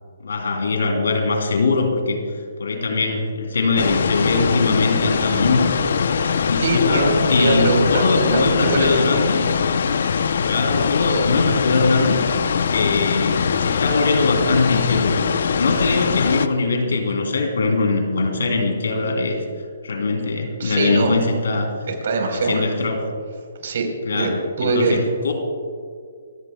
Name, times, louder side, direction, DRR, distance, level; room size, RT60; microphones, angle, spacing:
voice 1, 0.2-2.2 2.6-9.4 10.4-12.2 12.7-15.2 15.6-19.4 19.8-21.7 22.3-23.1 24.0-25.3, left 3 dB, 80° left, 3 dB, 3.1 m, -21 dB
sound 1, 3.8-16.5, left 6 dB, 65° left, 0.6 m, -22 dB
voice 2, 6.6-7.1 7.4-8.1 8.3-9.0 20.6-21.2 21.9-22.7 23.6-24.3 24.6-25.0, right 3 dB, 60° right, 3 dB, 4.0 m, -22 dB
28.0 x 15.5 x 2.3 m, 2.1 s
hypercardioid pair, 155°, 0 cm